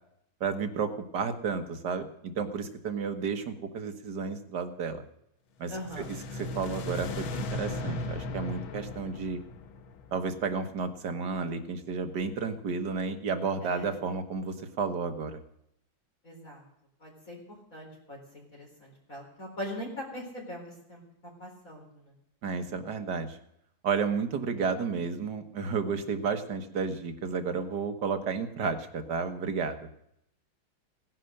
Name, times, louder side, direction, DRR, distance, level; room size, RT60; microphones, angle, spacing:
voice 1, 0.4-5.0 5.6-9.4 10.1-15.4 22.4-23.4 23.8-29.9, right 5 dB, 55° right, 7 dB, 1.9 m, -32 dB
sound 1, 5.7-10.9, left 2 dB, 75° left, 1.8 m, -37 dB
voice 2, 5.7-6.1 13.6-13.9 16.2-16.6 17.0-17.4 17.7-22.1, equal, 40° left, -2 dB, 4.7 m, -41 dB
18.0 x 11.0 x 6.6 m, 0.74 s
omnidirectional pair, 2.2 m